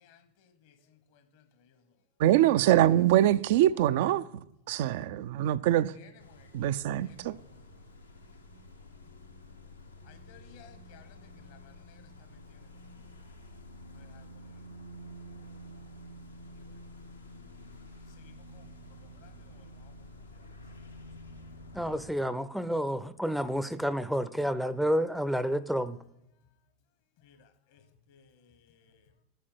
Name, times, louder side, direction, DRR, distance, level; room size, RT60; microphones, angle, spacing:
voice 1, 0.0-1.8 5.9-7.7 10.0-12.7 13.9-14.5 16.5-16.7 18.1-20.5 27.2-29.1, left 7 dB, 60° left, 1.1 m, -60 dB
voice 2, 2.2-4.2 4.7-5.9 6.5-7.3, right 13 dB, 60° right, 0.3 m, -24 dB
sound 1, 6.2-22.1, equal, 90° left, 0.9 m, -49 dB
voice 3, 21.7-26.0, equal, ahead, 0.5 m, -30 dB
8.4 x 4.4 x 5.9 m
figure-of-eight pair, 80°, 0 cm